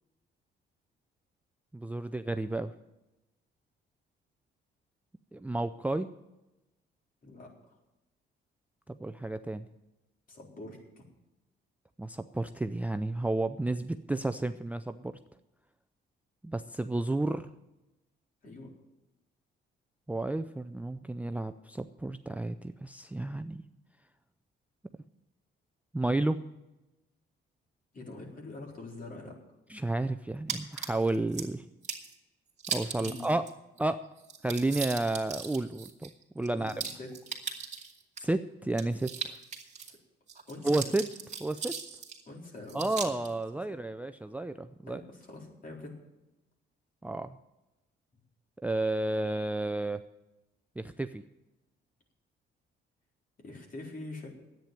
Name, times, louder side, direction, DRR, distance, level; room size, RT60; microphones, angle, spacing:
voice 1, 1.7-2.7 5.3-6.1 8.9-9.7 12.0-15.2 16.4-17.5 20.1-23.6 25.9-26.4 29.7-31.6 32.7-33.5 33.8-34.1 34.4-36.1 36.4-36.8 38.2-39.3 40.6-41.1 41.4-41.8 42.7-45.0 47.0-47.4 48.6-50.0 50.8-51.2, right 2 dB, 5° right, 11 dB, 0.4 m, -31 dB
voice 2, 10.3-10.8 18.4-18.7 27.9-29.4 33.0-33.3 36.5-37.1 39.9-40.0 40.5-40.8 42.3-43.2 44.9-45.9 53.4-54.3, left 2 dB, 45° left, -1 dB, 4.1 m, -44 dB
sound 1, 30.5-31.5 31.8-32.1 32.6-33.5 33.8-33.9 34.2-38.2 38.7-39.9 40.3-42.2 42.7-43.3, right 6 dB, 35° right, 2.5 m, -38 dB
10.5 x 9.0 x 9.1 m, 0.98 s
cardioid pair, 90°, 20 cm